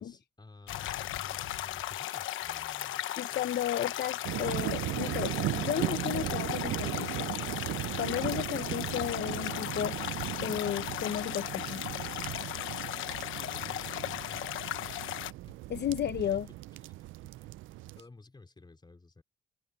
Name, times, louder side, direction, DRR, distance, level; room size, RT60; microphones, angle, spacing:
voice 1, 0.0-4.5 8.8-9.1 13.3-14.4 14.8-15.9 16.2-16.4 16.8-16.9 17.4-17.5 18.0-19.2, left 3 dB, 20° left, 4.7 m, -54 dB
sound 1, 0.7-15.3, left 13 dB, 85° left, 1.1 m, -36 dB
voice 2, 3.2-7.3 8.0-11.9 15.7-16.5, left 10 dB, 60° left, 0.8 m, -34 dB
sound 2, 4.2-18.0, right 17 dB, 80° right, 0.4 m, -37 dB
cardioid pair, 90°, 20 cm